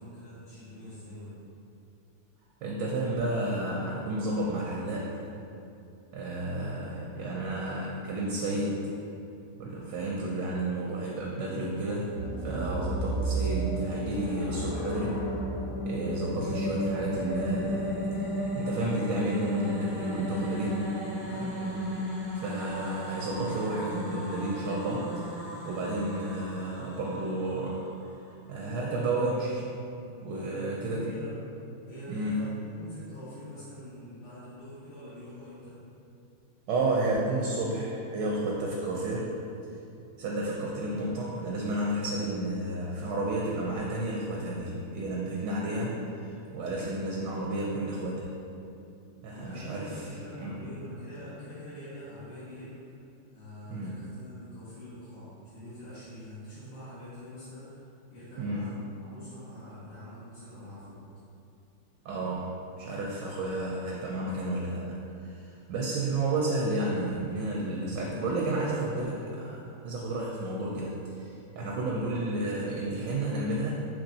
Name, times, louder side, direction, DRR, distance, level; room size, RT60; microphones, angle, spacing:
voice 1, 0.0-1.4 21.2-21.8 30.3-31.4 31.9-35.8 49.3-53.0 53.3-61.0, left 1 dB, 80° left, -15 dB, 2.2 m, -45 dB
voice 2, 2.6-5.2 6.1-8.8 9.6-12.1 12.4-15.2 15.8-18.0 18.5-20.8 22.3-27.8 28.5-29.6 30.2-31.1 32.1-32.4 36.7-39.3 40.2-48.3 49.2-50.1 50.4-50.7 53.7-54.0 58.4-58.7 62.0-64.9 65.2-73.8, right 2 dB, 75° right, -3 dB, 1.0 m, -31 dB
sound 1, 12.1-18.4, right 2 dB, 60° left, 1.1 m, -34 dB
sound 2, 14.7-27.9, equal, 35° left, 0.5 m, -35 dB
6.0 x 2.9 x 2.7 m, 2.7 s
omnidirectional pair, 2.4 m